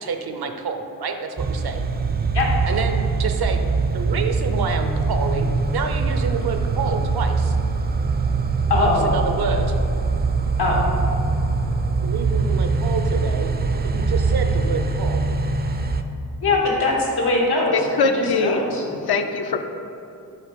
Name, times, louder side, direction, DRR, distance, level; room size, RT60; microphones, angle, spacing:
voice 1, 0.0-1.8 2.7-3.6 3.9-5.5 5.7-7.6 8.8-9.7 12.0-13.5 13.8-15.2, right 5 dB, 70° right, 6 dB, 0.7 m, -28 dB
sound 1, 1.4-16.0, right 4 dB, 25° right, 0.4 m, -22 dB
voice 2, 8.7-9.1 10.6-10.8 16.4-17.7 18.4-18.8, left 3 dB, 90° left, -3 dB, 1.4 m, -20 dB
voice 3, 17.7-19.6, left 4 dB, 75° left, 6 dB, 0.6 m, -23 dB
7.5 x 3.3 x 5.2 m, 2.8 s
cardioid pair, 55°, 39 cm